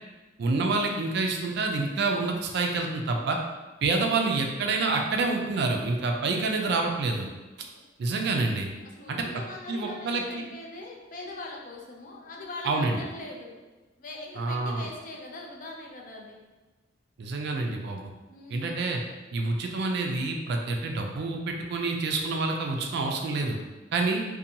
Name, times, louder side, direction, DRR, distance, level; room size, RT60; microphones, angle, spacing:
voice 1, 0.4-3.4 3.8-7.3 8.0-8.7 9.1-9.2 9.7-10.4 12.6-13.0 14.4-14.9 17.2-18.1 18.5-19.0 19.3-23.6 23.9-24.2, right 3 dB, 60° right, 2 dB, 0.4 m, -27 dB
voice 2, 8.9-13.6 14.0-16.4 18.3-18.8, left 2 dB, 45° left, 0 dB, 0.4 m, -41 dB
2.7 x 2.2 x 2.6 m, 1.2 s
head